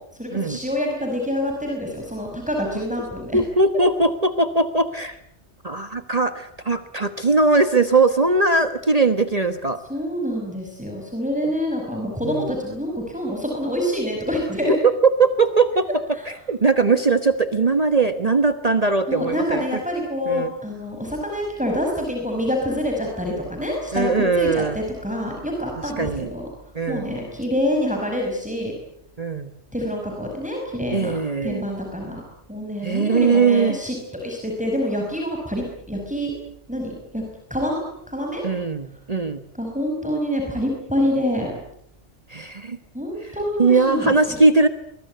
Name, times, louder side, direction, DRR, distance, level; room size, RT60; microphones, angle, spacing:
voice 1, 0.1-3.4 9.9-14.7 16.1-16.2 19.1-26.5 26.9-28.8 29.7-31.2 31.4-32.2 32.5-36.3 36.7-37.2 37.5-38.4 39.5-41.5 42.9-44.4, equal, 5° right, 0 dB, 5.6 m, -26 dB
voice 2, 3.3-5.2 5.6-9.8 12.2-12.5 14.7-14.9 15.2-15.9 16.3-19.8 20.3-20.5 23.9-24.8 26.0-26.3 26.7-27.1 29.2-29.5 30.9-31.6 32.8-33.8 38.4-39.4 42.3-42.8 43.2-44.7, right 3 dB, 35° right, 10 dB, 1.3 m, -20 dB
23.5 x 22.5 x 9.3 m, 0.71 s
omnidirectional pair, 1.1 m